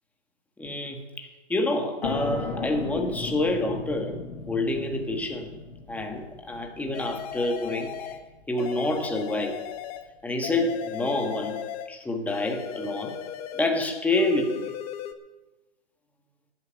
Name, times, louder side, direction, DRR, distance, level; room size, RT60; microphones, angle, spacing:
voice 1, 0.6-4.2 4.5-5.6 5.9-8.2 8.5-9.6 10.2-11.6 11.9-13.2 13.5-14.8, left 2 dB, 5° left, 1.4 m, -28 dB
sound 1, 2.0-9.4, left 3 dB, 55° left, 5.4 m, -37 dB
sound 2, 6.9-8.2 8.6-10.1 10.4-11.9 12.3-13.8 14.1-15.1, left 10 dB, 35° left, 1.0 m, -36 dB
13.0 x 8.2 x 9.0 m
hypercardioid pair, 150°, 33 cm